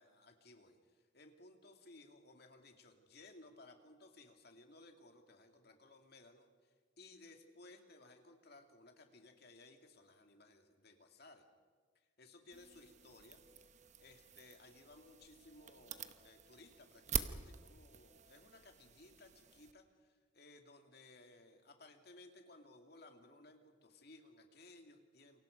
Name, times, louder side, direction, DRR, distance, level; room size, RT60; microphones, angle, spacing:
voice 1, 0.0-11.4 11.9-13.4 14.0-25.4, left 2 dB, 50° left, 4 dB, 2.5 m, -60 dB
sound 1, 12.5-19.7, right 7 dB, 35° right, 1.0 m, -46 dB
28.5 x 24.0 x 5.3 m, 1.5 s
head